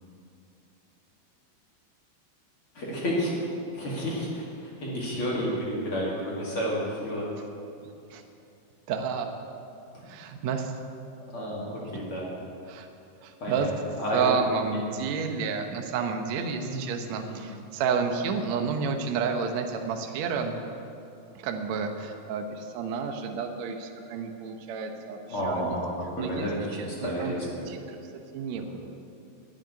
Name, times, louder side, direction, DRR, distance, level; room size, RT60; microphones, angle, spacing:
voice 1, 2.7-7.3 9.9-10.0 11.3-12.3 13.4-13.7 14.0-14.5 14.7-14.9 16.5-17.5 25.3-27.7 28.5-28.7, equal, 40° left, -5 dB, 2.7 m, -31 dB
voice 2, 8.9-9.3 10.1-10.7 12.7-12.9 13.2-13.7 14.1-20.6 21.3-25.2 25.4-25.8 26.2-26.5 26.8-27.3 27.7-28.9, right 5 dB, 80° right, 4 dB, 1.5 m, -30 dB
11.5 x 7.6 x 9.8 m, 2.6 s
omnidirectional pair, 4.6 m